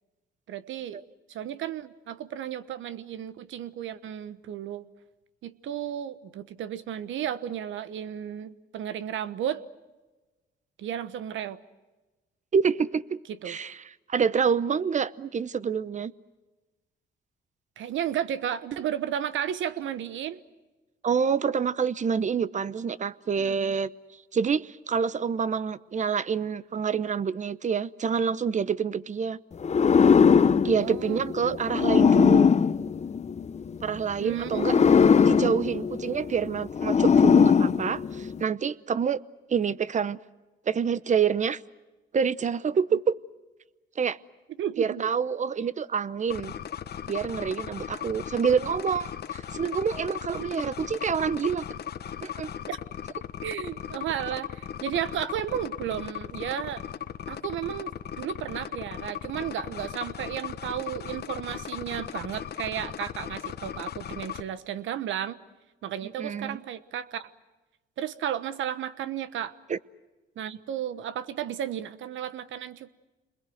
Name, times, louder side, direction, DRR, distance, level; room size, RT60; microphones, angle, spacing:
voice 1, 0.5-1.0 1.3-4.9 5.4-9.6 10.8-11.6 13.3-13.6 17.8-20.4 23.4-23.7 30.8-31.6 34.2-35.1 44.6-45.0 52.7-52.8 53.4-56.8 57.3-65.4 65.8-67.3 68.0-69.6 70.4-72.9, right 10 dB, 75° right, 14 dB, 1.2 m, -33 dB
voice 2, 12.5-13.2 13.4-13.8 14.1-16.1 21.0-23.9 24.3-29.4 30.6-32.5 33.8-34.7 35.3-39.2 39.5-40.2 40.7-41.6 42.1-43.2 44.0-44.2 44.8-46.5 47.1-51.6 52.2-52.5 66.0-66.6 69.7-69.8, right 6 dB, 35° right, 18 dB, 0.8 m, -27 dB
sound 1, 29.6-33.8 34.5-38.4, left 6 dB, 35° left, 0.8 m, -20 dB
sound 2, 46.3-64.4, left 9 dB, 55° left, 1.2 m, -37 dB
27.5 x 21.5 x 8.0 m, 1.2 s
cardioid pair, 90°, 20 cm